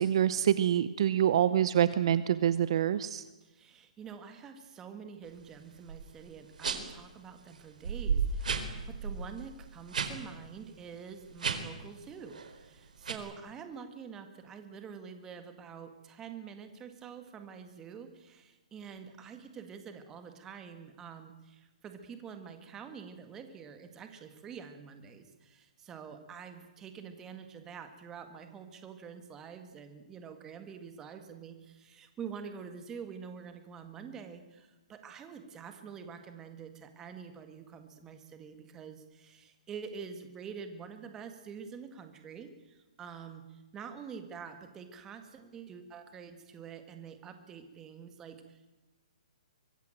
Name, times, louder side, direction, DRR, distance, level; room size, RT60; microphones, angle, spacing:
voice 1, 0.0-3.2, right 10 dB, 40° right, 15 dB, 0.9 m, -26 dB
voice 2, 3.4-48.7, right 6 dB, 10° right, 7 dB, 1.9 m, -47 dB
sound 1, 5.9-6.1 6.6-7.0 7.5-7.6 7.8-10.1 10.4-10.6 11.3-11.8 12.2-12.6 13.0-13.1, right 5 dB, 80° right, 4.2 m, -33 dB
24.0 x 21.5 x 9.1 m, 1.1 s
hypercardioid pair, 175°, 4 cm